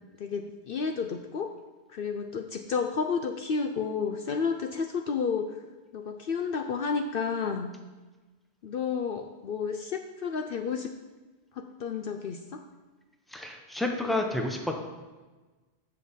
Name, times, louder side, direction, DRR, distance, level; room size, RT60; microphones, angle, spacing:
voice 1, 0.2-1.5 1.9-5.5 5.9-7.7 8.6-10.9 11.6-12.6, left 5 dB, 60° left, 5 dB, 0.7 m, -31 dB
voice 2, 13.3-14.8, left 2 dB, ahead, 2 dB, 0.8 m, -30 dB
6.1 x 5.8 x 7.1 m, 1.2 s
omnidirectional pair, 1.2 m